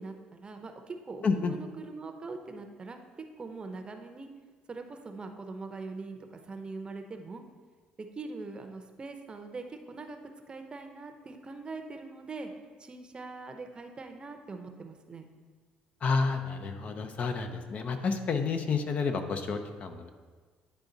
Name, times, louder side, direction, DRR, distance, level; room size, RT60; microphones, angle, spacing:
voice 1, 0.0-3.0 3.4-4.3 4.7-7.4 8.0-10.2 10.5-12.5 12.8-15.3, right 3 dB, 30° right, 6 dB, 0.7 m, -42 dB
voice 2, 1.2-1.5 16.0-20.1, left 4 dB, 50° left, 7 dB, 0.7 m, -30 dB
9.7 x 3.5 x 3.9 m, 1.5 s
supercardioid pair, 85°, 3 cm